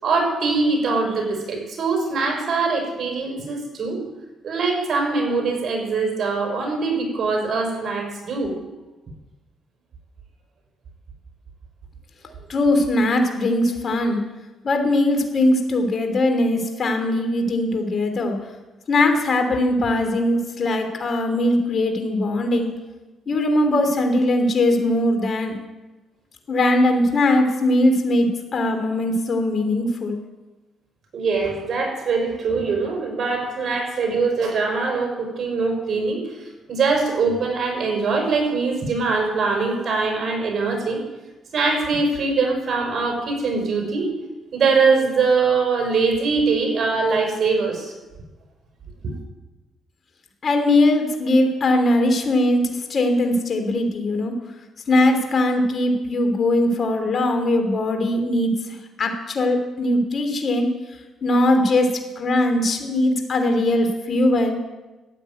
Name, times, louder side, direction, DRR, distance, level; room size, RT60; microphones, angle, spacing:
voice 1, 0.0-4.0 4.4-8.6 31.1-41.0 41.5-44.1 44.5-47.9 49.0-49.1, right 4 dB, 50° right, 1 dB, 5.6 m, -22 dB
voice 2, 12.5-14.2 14.6-18.3 18.9-22.7 23.3-25.6 26.5-30.2 50.4-54.3 54.9-60.7 61.2-64.5, left 1 dB, 50° left, 5 dB, 2.9 m, -20 dB
13.5 x 9.0 x 9.2 m, 1.1 s
cardioid pair, 90°, 0 cm